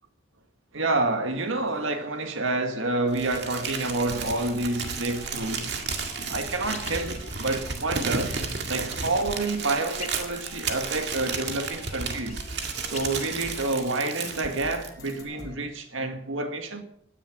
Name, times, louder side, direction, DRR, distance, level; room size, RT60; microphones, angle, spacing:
voice 1, 0.7-5.7 6.3-8.4 8.7-12.4 12.8-16.8, right 2 dB, 75° right, 1.9 m, -28 dB
sound 1, 1.4-15.6, left 1 dB, 20° left, 2.4 m, -50 dB
Crumpling crinkling, 3.1-15.2, right 5 dB, 55° right, 2.0 m, -33 dB
sound 2, 3.9-13.3, left 3 dB, 35° left, 1.0 m, -46 dB
16.5 x 10.0 x 6.2 m
head